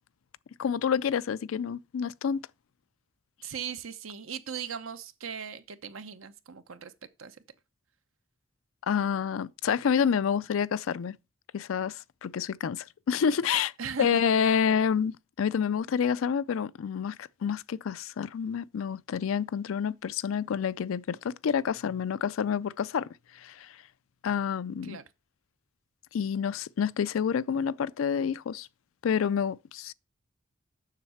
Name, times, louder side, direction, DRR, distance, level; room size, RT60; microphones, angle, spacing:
voice 1, 0.6-2.4 8.9-11.2 11.5-13.7 14.0-17.2 17.4-23.1 23.4-23.7 24.2-25.0 26.1-28.7 29.0-29.9, left 7 dB, 80° left, 0.4 m, -28 dB
voice 2, 3.4-6.9 7.2-7.4 13.8-14.2 24.8-25.0, right 7 dB, 85° right, 0.8 m, -39 dB
7.4 x 6.4 x 5.7 m
head